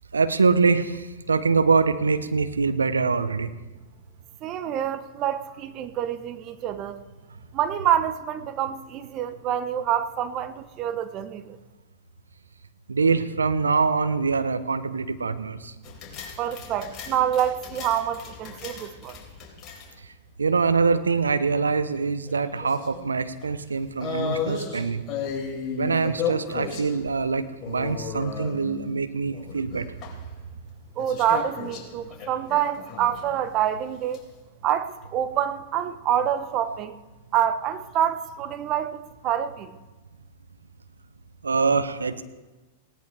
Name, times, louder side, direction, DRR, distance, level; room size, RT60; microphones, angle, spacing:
voice 1, 0.1-3.5 12.9-15.7 20.4-25.0 25.8-30.0 41.4-42.2, right 4 dB, 85° right, 11 dB, 0.9 m, -24 dB
voice 2, 4.4-7.0 7.5-11.6 16.4-19.2 31.0-34.2 34.6-37.0 37.3-39.7, right 10 dB, 40° right, 11 dB, 1.0 m, -27 dB
sound 1, 15.8-20.1 22.0-23.1 23.4-23.5 24.0-26.9 27.6-28.9 29.3-30.1 31.0-33.4 33.9-34.2, left 6 dB, 30° left, 4.2 m, -35 dB
18.5 x 17.5 x 3.5 m, 1.2 s
figure-of-eight pair, 100°, 0 cm